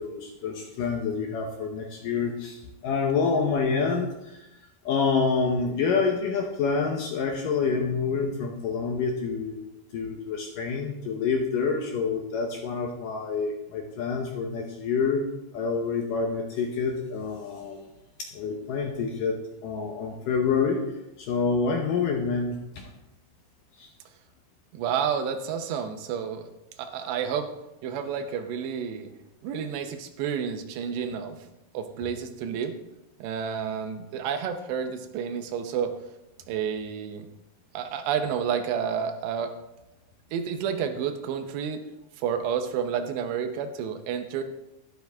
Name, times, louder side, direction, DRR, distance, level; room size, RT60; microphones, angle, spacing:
voice 1, 0.0-4.5 4.9-9.6 9.9-15.2 15.5-17.8 18.2-20.8 21.2-22.8 23.8-23.9, left 5 dB, 70° left, 2 dB, 2.2 m, -27 dB
voice 2, 24.7-26.5 26.8-27.5 27.8-29.1 29.4-31.4 31.7-32.8 33.2-35.9 36.5-37.3 37.7-39.5 40.3-41.8 42.2-44.4, right 7 dB, 90° right, 7 dB, 3.1 m, -30 dB
12.0 x 11.5 x 3.5 m, 0.90 s
omnidirectional pair, 4.8 m